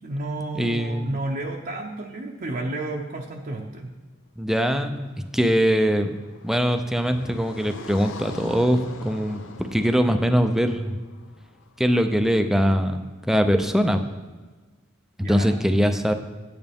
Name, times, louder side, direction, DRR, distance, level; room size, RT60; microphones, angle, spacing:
voice 1, 0.0-3.9 15.2-15.6, right 2 dB, 45° right, -1 dB, 0.7 m, -31 dB
voice 2, 0.5-1.2 4.4-6.1 6.4-11.0 11.8-14.0 15.3-16.1, equal, ahead, 7 dB, 0.5 m, -22 dB
Car passing by, 5.0-12.2, left 3 dB, 70° left, 0.7 m, -42 dB
9.0 x 8.7 x 3.5 m, 1.3 s
head